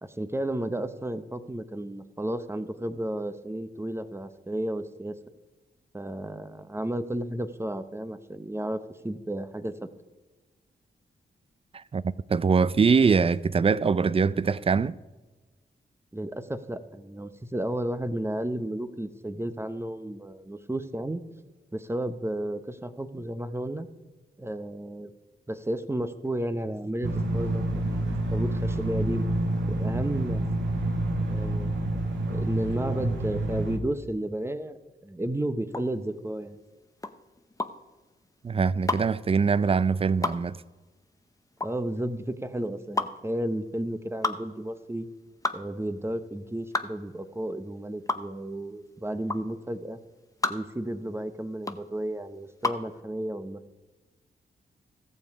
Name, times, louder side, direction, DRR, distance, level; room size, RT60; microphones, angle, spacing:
voice 1, 0.0-5.1 5.9-9.9 16.1-21.2 21.7-23.9 24.4-25.1 25.5-29.3 29.7-30.5 31.3-31.8 32.3-34.8 35.0-36.6 41.6-45.1 45.5-50.0 50.5-53.6, right 1 dB, 15° right, 0.9 m, -33 dB
voice 2, 12.3-14.9 38.4-40.6, right 5 dB, 30° right, 0.4 m, -23 dB
sound 1, 27.0-33.8, right 1 dB, 90° right, 1.3 m, -28 dB
sound 2, 35.7-52.9, left 2 dB, 20° left, 0.8 m, -33 dB
14.5 x 7.1 x 4.8 m
cardioid pair, 60°, 19 cm